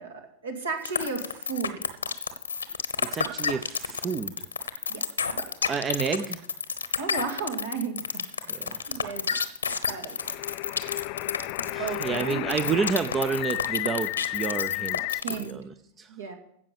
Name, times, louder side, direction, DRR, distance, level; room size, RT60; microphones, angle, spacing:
voice 1, 0.0-1.7 4.9-5.1 5.4-5.5 7.0-8.6 8.9-9.3 9.9-10.4 11.8-12.4 15.2-15.6 16.1-16.3, right 5 dB, 65° right, 2 dB, 2.3 m, -34 dB
sound 1, 0.8-15.5, left 6 dB, 75° left, 1.0 m, -29 dB
voice 2, 3.0-4.5 5.7-6.4 8.5-9.0 11.1-11.3 11.7-16.2, right 5 dB, 20° right, 11 dB, 0.6 m, -30 dB
sound 2, 10.2-15.2, left 24 dB, 45° left, 0.3 m, -33 dB
16.0 x 6.0 x 6.8 m, 0.75 s
figure-of-eight pair, 90°, 0 cm